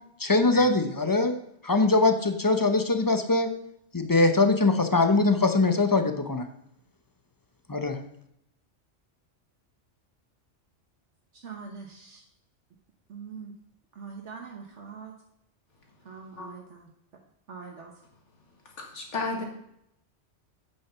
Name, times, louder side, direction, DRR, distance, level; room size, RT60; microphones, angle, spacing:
voice 1, 0.2-1.3 1.6-3.5 3.9-6.5 7.7-8.0, left 3 dB, 20° left, 7 dB, 0.7 m, -22 dB
voice 2, 11.4-12.2 13.1-13.5 14.0-15.1 16.1-16.9 17.5-17.9, right 5 dB, 70° right, 1 dB, 1.4 m, -42 dB
voice 3, 18.8-19.4, left 3 dB, 75° left, 1 dB, 2.2 m, -32 dB
8.8 x 6.3 x 5.7 m, 0.76 s
omnidirectional pair, 1.2 m